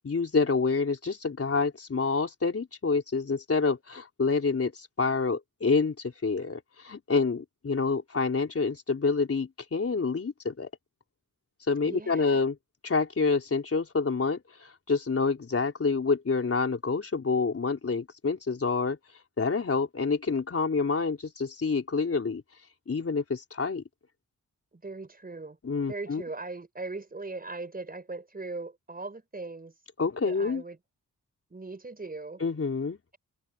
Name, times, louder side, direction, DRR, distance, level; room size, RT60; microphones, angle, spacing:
voice 1, 0.0-10.7 11.7-12.6 12.8-19.0 19.4-22.4 22.9-23.8 25.6-26.2 30.0-30.6 32.4-33.0, left 4 dB, 45° left, 4.2 m, -27 dB
voice 2, 11.8-12.4 24.7-25.6 25.9-29.7 30.3-30.8 31.5-32.4, right 3 dB, 25° right, 5.2 m, -39 dB
wide cardioid pair, 100°, 33 cm